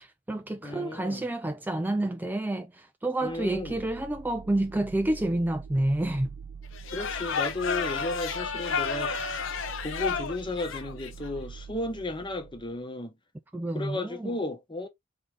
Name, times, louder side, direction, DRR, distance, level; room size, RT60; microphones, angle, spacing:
voice 1, 0.0-6.3 13.5-14.3, right 1 dB, 10° right, 0.3 m, -29 dB
voice 2, 0.6-1.3 3.2-3.8 6.9-9.1 9.8-13.1 13.7-14.9, left 2 dB, 25° left, 1.0 m, -34 dB
sound 1, 3.2-12.8, right 6 dB, 75° right, 0.5 m, -45 dB
sound 2, 6.7-11.3, left 5 dB, 85° left, 0.8 m, -31 dB
4.0 x 3.2 x 3.7 m
head